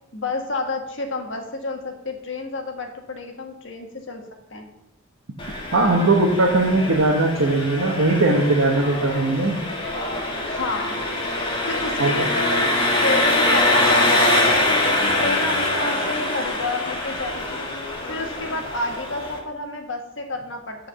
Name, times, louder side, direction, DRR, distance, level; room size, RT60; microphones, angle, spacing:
voice 1, 0.1-4.2 4.5-4.7 10.4-11.1 11.7-12.7 13.0-14.5 14.9-17.7 18.1-20.9, left 2 dB, 65° left, 3 dB, 1.5 m, -29 dB
Engine, 5.4-19.4, left 1 dB, 25° left, 1.8 m, -23 dB
voice 2, 5.7-9.6 12.0-12.3, right 2 dB, 90° right, -3 dB, 1.2 m, -19 dB
8.5 x 4.7 x 6.8 m, 0.86 s
head